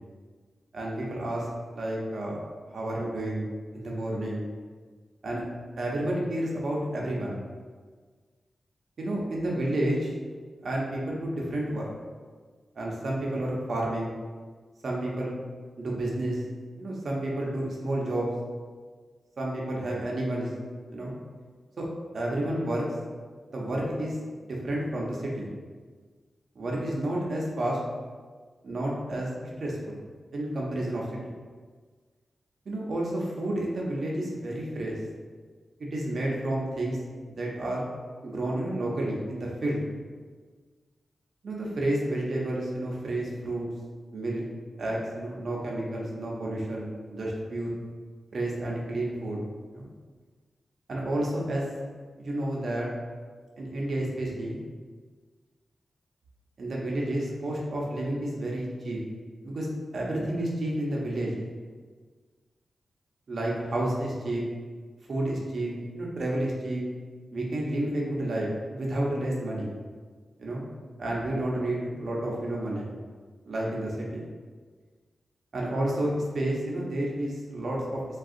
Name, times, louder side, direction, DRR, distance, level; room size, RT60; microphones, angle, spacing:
voice 1, 0.7-2.4 2.7-3.5 3.7-4.5 5.2-5.4 5.8-7.4 9.0-10.1 10.6-11.9 12.7-14.1 14.8-15.4 15.8-16.4 16.8-18.3 19.4-20.5 20.9-21.1 21.8-21.9 22.1-22.9 23.5-25.5 26.5-27.8 28.6-30.0 30.3-31.3 32.7-35.0 35.8-37.0 37.3-37.8 38.2-39.8 41.4-43.7 44.1-44.4 44.8-47.8 48.3-49.4 49.7-49.9 50.9-51.8 52.2-52.9 53.6-54.6 56.6-59.0 59.4-61.4 63.3-64.4 65.1-66.8 67.3-69.7 70.4-70.6 71.0-72.9 73.5-74.2 75.5-78.0, right 1 dB, 70° right, -3 dB, 0.6 m, -30 dB
3.5 x 2.3 x 2.5 m, 1.5 s
cardioid pair, 55°, 0 cm